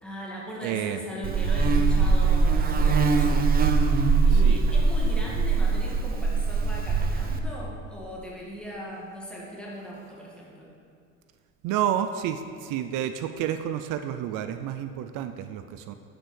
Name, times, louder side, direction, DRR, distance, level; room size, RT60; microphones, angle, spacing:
voice 1, 0.0-3.4 4.3-10.7, equal, 5° left, -5 dB, 2.2 m, -39 dB
voice 2, 0.6-1.0 4.3-4.6 11.6-15.9, right 10 dB, 70° right, 9 dB, 0.6 m, -30 dB
Buzz, 1.2-7.4, right 4 dB, 30° right, 0.7 m, -22 dB
9.4 x 8.1 x 6.5 m, 2.3 s
cardioid pair, 150°, 32 cm